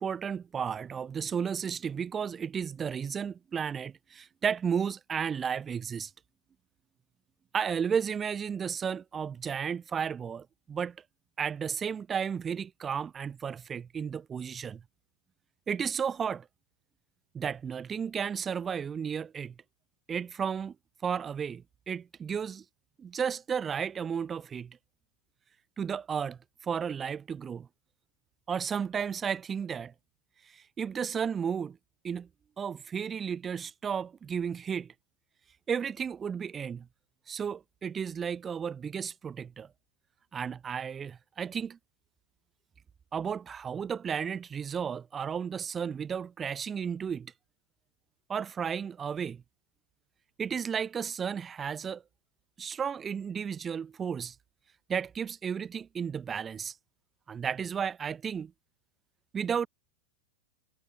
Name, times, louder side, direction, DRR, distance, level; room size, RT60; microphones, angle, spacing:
voice 1, 0.0-6.1 7.5-11.0 11.4-14.8 15.7-16.5 17.3-19.5 20.1-20.7 21.0-22.6 23.0-24.8 25.8-27.7 28.5-29.9 30.5-31.8 32.0-32.3 32.6-34.9 35.7-36.9 37.3-39.7 40.3-41.8 43.1-47.3 48.3-49.4 50.4-52.0 52.6-54.3 54.9-56.7 57.3-58.5 59.3-59.7, right 7 dB, 20° right, 3.0 m, -33 dB
figure-of-eight pair, 90°, 0 cm